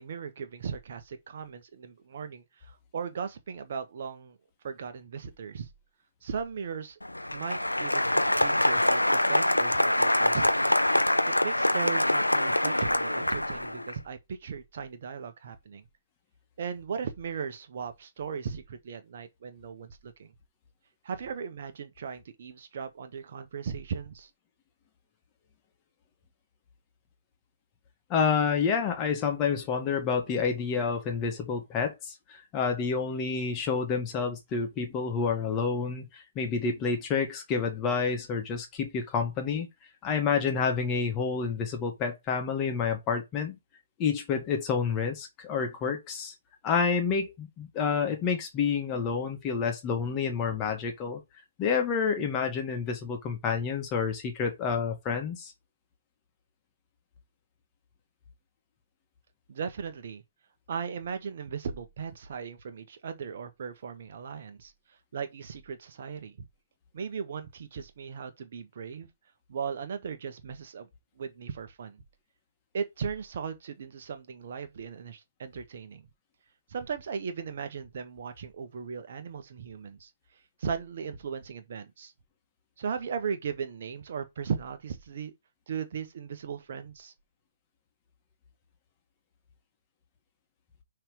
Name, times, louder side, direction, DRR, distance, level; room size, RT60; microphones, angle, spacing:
voice 1, 0.0-4.4 4.6-5.7 6.2-7.0 7.3-10.6 11.3-15.9 16.6-20.3 21.0-24.3 59.5-60.2 60.7-64.7 65.1-66.4 66.9-69.1 69.5-70.9 71.2-72.0 72.7-76.0 76.7-80.1 80.6-82.1 82.8-85.3 85.7-87.1, right 6 dB, 45° right, 1.1 m, -37 dB
Applause, 7.0-13.9, left 1 dB, 85° left, 0.6 m, -25 dB
voice 2, 28.1-39.7 40.0-43.6 44.0-46.3 46.6-51.2 51.6-55.5, left 6 dB, 20° left, 1.5 m, -29 dB
5.9 x 3.4 x 5.1 m
figure-of-eight pair, 130°, 0 cm